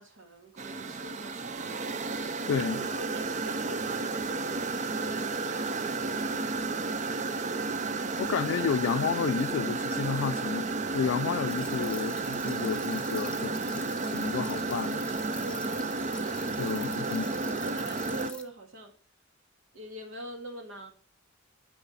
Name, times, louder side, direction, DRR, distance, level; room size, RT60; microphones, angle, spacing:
voice 1, 0.0-2.0 2.8-6.1 15.4-16.0 17.0-18.9 19.7-20.9, right 1 dB, 75° right, 2.0 m, -45 dB
sound 1, 0.6-18.3, right 3 dB, 35° right, 0.5 m, -32 dB
voice 2, 2.5-2.9 8.2-15.1 16.6-17.2, left 7 dB, 75° left, 0.3 m, -31 dB
sound 2, 11.5-18.4, left 3 dB, 5° left, 1.0 m, -46 dB
12.0 x 4.9 x 4.1 m
head